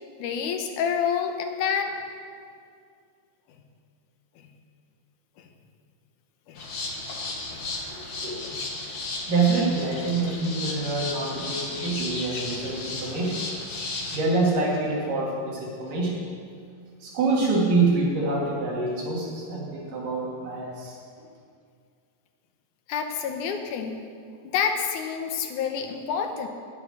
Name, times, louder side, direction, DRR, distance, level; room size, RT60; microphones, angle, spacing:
voice 1, 0.2-2.0 4.4-4.5 5.4-5.5 6.5-6.7 7.5-7.8 8.4-8.6 22.9-24.0 24.4-26.5, left 7 dB, 70° left, 4 dB, 2.3 m, -28 dB
sound 1, 6.6-14.2, left 2 dB, 55° left, 1.1 m, -34 dB
voice 2, 7.9-8.4 9.3-13.4 14.1-16.2 17.0-21.0, right 3 dB, 75° right, -4 dB, 4.0 m, -26 dB
9.8 x 8.5 x 8.9 m, 2.2 s
omnidirectional pair, 3.9 m